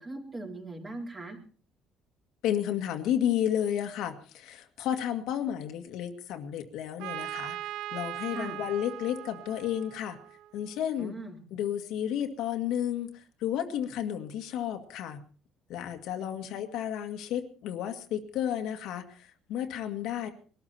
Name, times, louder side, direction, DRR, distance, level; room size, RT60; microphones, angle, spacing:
voice 1, 0.0-1.4 8.3-8.6 11.0-11.4 16.2-16.6, right 2 dB, 20° right, 1 dB, 3.9 m, -40 dB
voice 2, 2.4-10.2 10.5-11.1 11.5-15.2 15.7-20.3, left 10 dB, 70° left, 5 dB, 2.0 m, -32 dB
Trumpet, 7.0-10.7, right 14 dB, 85° right, 0.7 m, -39 dB
22.0 x 13.0 x 4.3 m, 0.40 s
cardioid pair, 145°, 0 cm